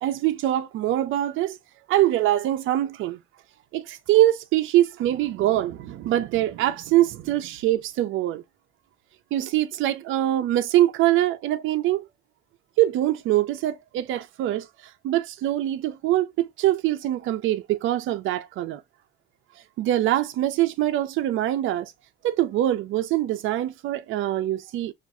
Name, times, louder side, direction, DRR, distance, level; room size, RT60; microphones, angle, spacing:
voice 1, 0.0-1.6 1.9-3.2 3.7-8.4 9.3-12.1 12.8-18.8 19.8-21.9 22.2-24.9, right 14 dB, 85° right, 0.5 m, -23 dB
5.7 x 2.4 x 2.6 m
cardioid pair, 90°, 20 cm